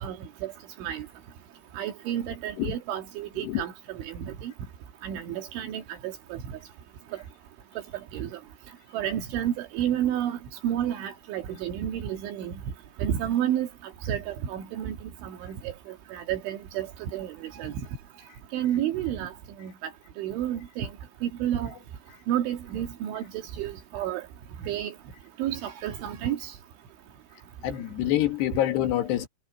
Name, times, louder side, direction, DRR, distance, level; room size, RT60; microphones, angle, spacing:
voice 1, 0.0-0.5 0.8-1.1 1.8-4.5 5.0-6.4 8.1-8.4 8.9-10.4 10.6-12.5 13.0-13.7 14.1-15.7 16.1-17.7 18.5-19.3 19.6-19.7 20.2-20.9 21.2-21.7 22.3-24.2 24.6-24.9 25.4-26.5, right 11 dB, 75° right, 4.4 m, -30 dB
voice 2, 27.6-29.3, left 13 dB, 65° left, 3.7 m, -26 dB
omnidirectional pair, 5.6 m